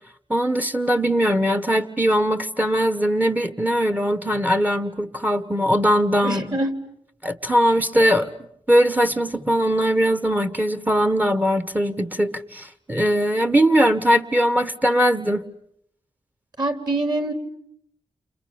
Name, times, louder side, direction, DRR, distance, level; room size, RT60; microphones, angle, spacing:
voice 1, 0.3-6.6 7.2-8.3 8.7-15.5, equal, 15° right, 11 dB, 1.3 m, -20 dB
voice 2, 6.2-6.7 16.6-17.3, right 2 dB, 35° right, 8 dB, 3.1 m, -24 dB
29.5 x 27.5 x 7.1 m, 0.71 s
cardioid pair, 75°, 11 cm